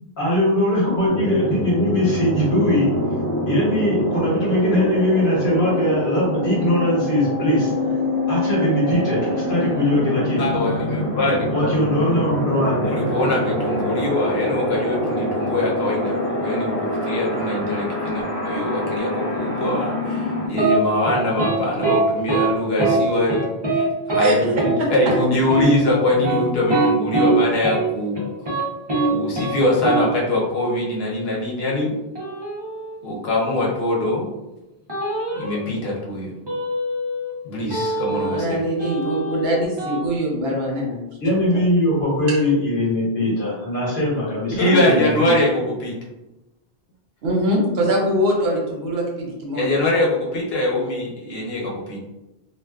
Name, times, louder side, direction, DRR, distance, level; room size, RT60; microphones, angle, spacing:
voice 1, 0.2-2.9 3.5-7.7 8.3-10.4 11.5-12.9 41.2-45.3, left 1 dB, 60° left, -6 dB, 1.1 m, -21 dB
sound 1, 1.1-20.5, left 1 dB, 15° left, 0.4 m, -25 dB
voice 2, 10.4-11.7 12.9-28.2 29.1-32.0 33.0-34.3 35.3-36.3 37.4-38.6 44.5-46.0 49.5-52.0, left 1 dB, 75° left, -3 dB, 0.9 m, -23 dB
sound 2, 20.6-20.7 21.1-21.6 21.8-22.0 22.3-22.5 22.8-23.0 23.3-23.8 24.1-24.3 24.6-24.7 25.1-25.2 25.5-25.6 26.1-27.3 27.6-27.8 28.2-28.6 28.9-29.1 29.3-29.5 29.8-30.0 32.2-32.9 34.9-35.6 36.5-37.3 37.7-38.5 38.8-40.0, right 3 dB, 30° right, 0.7 m, -23 dB
voice 3, 38.1-41.0 41.3-41.6 47.2-49.8, equal, 75° right, -2 dB, 0.9 m, -23 dB
2.5 x 2.2 x 2.3 m, 1.0 s
omnidirectional pair, 1.0 m